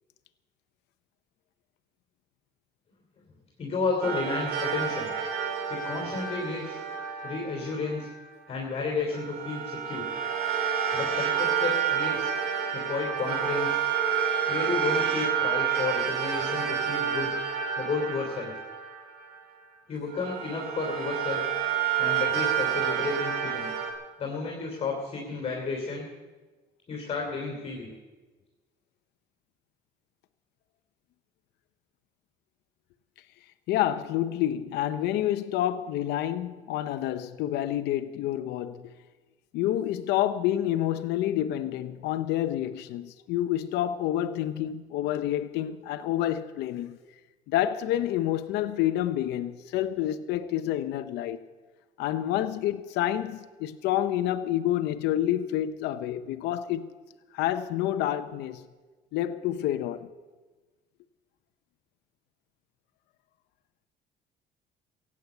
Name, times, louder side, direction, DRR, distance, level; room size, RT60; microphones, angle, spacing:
voice 1, 3.6-5.1 5.7-6.8 7.2-8.1 8.5-10.1 10.9-12.3 12.7-13.8 14.5-17.3 17.8-18.5 19.9-21.4 22.0-23.7 24.2-26.1 26.9-27.9, left 4 dB, 40° left, 3.1 m, -32 dB
sound 1, 4.0-8.2 9.1-19.6 20.1-23.9, right 8 dB, 85° right, 3.1 m, -29 dB
voice 2, 33.7-38.9 39.5-47.0 47.5-51.4 52.0-56.9 57.3-58.6 59.1-60.1, left 12 dB, 85° left, 0.7 m, -28 dB
16.0 x 8.5 x 8.2 m
cardioid pair, 110°, 17 cm